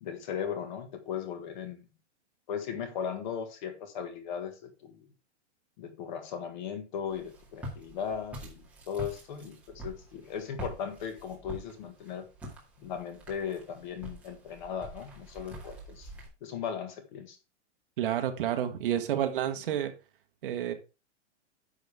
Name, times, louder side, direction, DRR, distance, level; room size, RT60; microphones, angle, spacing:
voice 1, 0.0-1.9 2.5-5.1 5.8-12.3 12.8-16.1 16.4-17.4, left 7 dB, 40° left, 1.7 m, -37 dB
Walk footsteps, 7.1-16.3, right 1 dB, 5° right, 2.1 m, -45 dB
voice 2, 18.0-19.9 20.4-20.7, right 10 dB, 45° right, 1.4 m, -30 dB
10.5 x 6.6 x 3.5 m
supercardioid pair, 175°, 36 cm